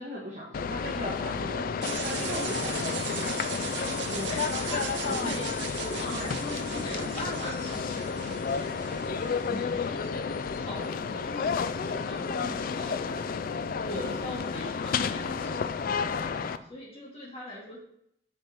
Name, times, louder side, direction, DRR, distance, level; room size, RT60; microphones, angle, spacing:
voice 1, 0.0-1.7 2.0-3.3 5.0-5.3 6.1-6.4 9.5-9.8, right 1 dB, 40° right, -6 dB, 1.7 m, -38 dB
sound 1, 0.5-16.6, left 5 dB, 50° left, 0.3 m, -31 dB
sound 2, 1.8-9.8, right 7 dB, 65° right, 0.8 m, -39 dB
voice 2, 3.8-5.5 5.7-13.5 13.8-17.8, left 1 dB, 30° left, -5 dB, 2.3 m, -40 dB
9.1 x 5.6 x 3.0 m, 0.71 s
head